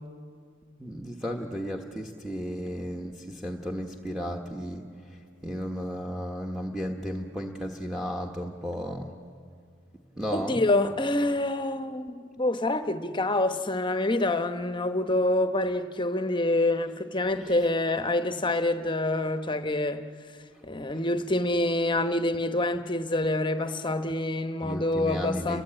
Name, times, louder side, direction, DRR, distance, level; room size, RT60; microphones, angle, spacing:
voice 1, 0.8-9.1 10.2-10.6 17.4-17.5 24.6-25.6, equal, ahead, 1.2 m, -34 dB
voice 2, 10.3-20.1 20.6-25.6, left 2 dB, 25° left, 0.9 m, -26 dB
30.0 x 22.0 x 8.9 m
head